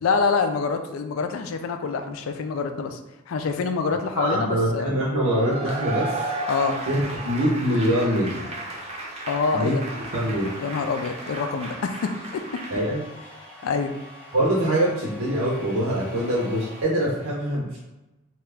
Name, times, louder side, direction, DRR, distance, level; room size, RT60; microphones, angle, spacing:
voice 1, 0.0-3.0 3.3-4.9 6.5-6.8 8.8-8.9 9.3-9.8 10.6-12.6 13.6-13.9, left 4 dB, 85° left, 7 dB, 0.4 m, -26 dB
voice 2, 4.1-6.1 6.9-7.0 7.2-8.5 9.5-9.7 10.1-10.5 12.7-13.0 14.3-17.8, right 1 dB, 80° right, -5 dB, 0.7 m, -24 dB
Cheering / Applause / Crowd, 5.2-12.9, right 2 dB, 30° right, 0.5 m, -34 dB
sound 1, 9.8-16.8, equal, 5° left, 0.9 m, -44 dB
2.9 x 2.3 x 3.3 m, 1.0 s
head